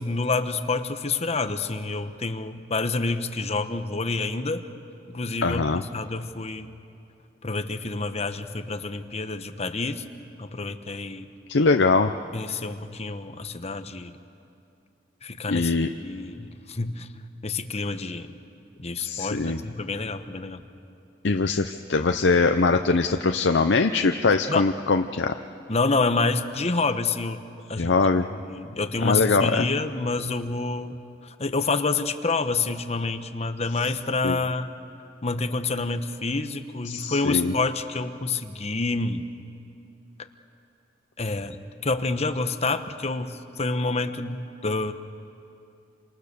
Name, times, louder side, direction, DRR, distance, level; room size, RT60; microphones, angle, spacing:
voice 1, 0.0-4.6 5.1-6.7 7.4-10.0 10.4-11.3 12.3-14.2 15.2-15.7 16.0-17.1 17.4-18.3 18.8-20.6 24.5-24.7 25.7-27.4 27.7-27.9 28.3-31.0 31.2-34.7 35.2-39.3 41.2-41.6 41.8-44.9, left 3 dB, 35° left, 9 dB, 1.1 m, -28 dB
voice 2, 5.4-5.8 11.5-12.2 15.5-15.9 19.0-19.6 21.2-25.3 27.8-28.3 29.0-29.6 34.2-34.4 36.9-37.5, left 3 dB, 85° left, 6 dB, 0.7 m, -22 dB
28.5 x 26.0 x 6.9 m, 2.6 s
head